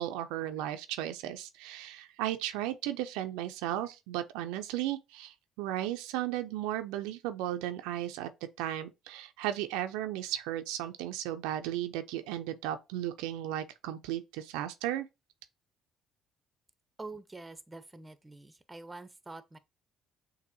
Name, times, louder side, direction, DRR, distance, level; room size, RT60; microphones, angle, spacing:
voice 1, 0.0-8.3 8.6-15.1, right 12 dB, 80° right, 0.4 m, -35 dB
voice 2, 17.0-19.6, right 3 dB, 20° right, 0.6 m, -46 dB
6.7 x 2.7 x 2.6 m
hypercardioid pair, 55°, 0 cm